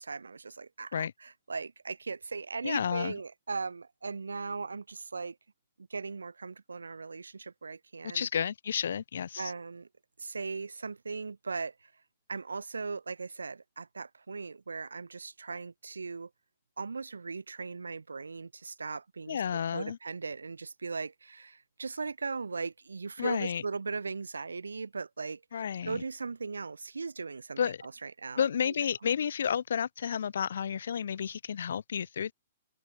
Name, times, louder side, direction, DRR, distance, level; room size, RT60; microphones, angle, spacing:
voice 1, 0.0-5.4 5.9-8.3 9.4-9.9 10.2-11.7 12.3-16.3 16.8-19.4 19.7-28.7, right 4 dB, 85° right, 0.6 m, -38 dB
voice 2, 2.6-3.2 8.0-9.5 19.3-20.0 23.2-23.6 25.5-26.0 27.6-27.8 28.4-32.3, left 8 dB, 70° left, 0.4 m, -31 dB
open air
hypercardioid pair, 125°, 0 cm